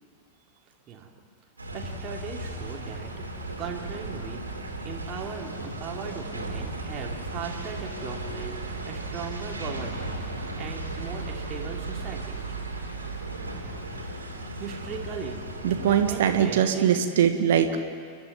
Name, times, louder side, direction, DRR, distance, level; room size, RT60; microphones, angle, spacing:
sound 1, 1.6-16.4, right 2 dB, 80° right, 3.3 m, -35 dB
voice 1, 1.7-4.4 4.8-12.6 14.3-15.4 15.9-17.0, right 6 dB, 30° right, 0 dB, 2.7 m, -38 dB
voice 2, 15.6-17.8, right 9 dB, 55° right, 7 dB, 1.5 m, -22 dB
29.0 x 12.5 x 9.7 m, 2.1 s
figure-of-eight pair, 90°, 0 cm